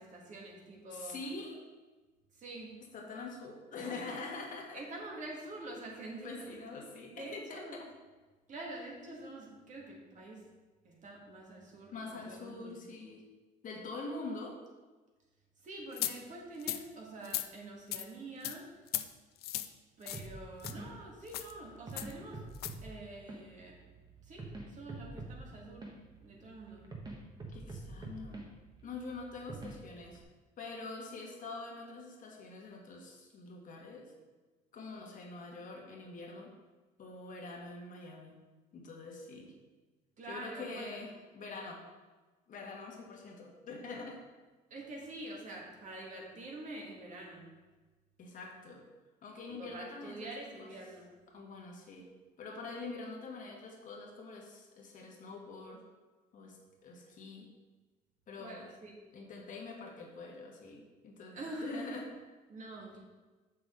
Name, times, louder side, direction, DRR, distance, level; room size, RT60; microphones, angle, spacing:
voice 1, 0.0-1.2 2.3-2.8 4.7-6.6 7.1-7.8 8.5-10.5 10.8-12.8 15.6-18.7 20.0-22.5 22.8-23.8 24.2-25.9 26.2-26.9 40.2-41.0 44.7-47.5 49.5-51.1 52.8-53.0 58.4-59.0 61.3-61.8 62.5-63.0, right 2 dB, 45° right, -1 dB, 1.8 m, -46 dB
voice 2, 0.9-1.6 2.9-4.8 6.2-7.8 11.9-13.3 13.6-14.6 27.5-28.4 28.8-30.2 30.6-34.1 34.7-36.5 37.0-38.4 38.7-39.5 40.3-41.8 42.5-44.3 48.2-48.8 49.2-50.7 51.3-52.1 52.4-55.8 56.3-57.5 58.3-58.6 59.1-62.1, left 3 dB, 50° left, 0 dB, 1.5 m, -45 dB
sound 1, 16.0-16.1 16.6-16.8 17.2-17.5 17.9-18.1 18.4-18.6 18.9-19.1 19.4-19.7 20.1-20.3 20.6-20.7 21.3-21.5 22.0-22.1 22.5-22.7, left 14 dB, 70° left, 0.4 m, -36 dB
sound 2, 20.1-30.2, right 2 dB, 25° right, 1.2 m, -47 dB
6.9 x 5.8 x 3.7 m, 1.3 s
cardioid pair, 110°, 17 cm